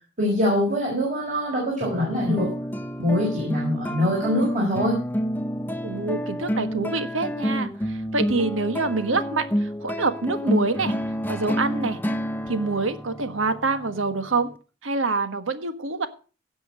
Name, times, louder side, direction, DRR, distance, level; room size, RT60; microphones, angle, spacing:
voice 1, 0.2-2.5 3.0-5.0, equal, 40° right, -4 dB, 5.3 m, -24 dB
sound 1, 1.8-14.6, equal, 10° left, 0.7 m, -29 dB
voice 2, 5.8-10.9 11.3-12.0 12.5-14.5 14.8-16.1, right 3 dB, 90° right, 10 dB, 1.4 m, -26 dB
16.5 x 6.3 x 6.2 m, 0.36 s
head